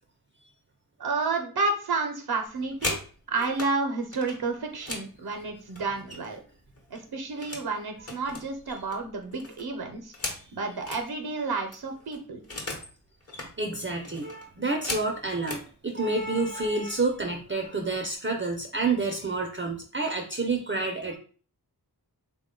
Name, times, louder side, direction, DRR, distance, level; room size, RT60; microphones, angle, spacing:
voice 1, 1.0-3.0 3.3-6.4 6.9-10.1 10.5-12.4, right 3 dB, 70° right, 4 dB, 0.6 m, -30 dB
sound 1, 2.4-3.7 4.1-6.5 6.8-7.7 8.0-11.0 11.4-11.5 11.7-12.9 13.2-13.5 14.0-15.7 16.5-16.7 17.0-17.3 17.6-18.1, left 2 dB, 40° left, 1.0 m, -38 dB
voice 2, 13.6-21.2, right 3 dB, 30° right, 2 dB, 0.5 m, -29 dB
3.6 x 2.2 x 3.7 m, 0.41 s
wide cardioid pair, 90°, 39 cm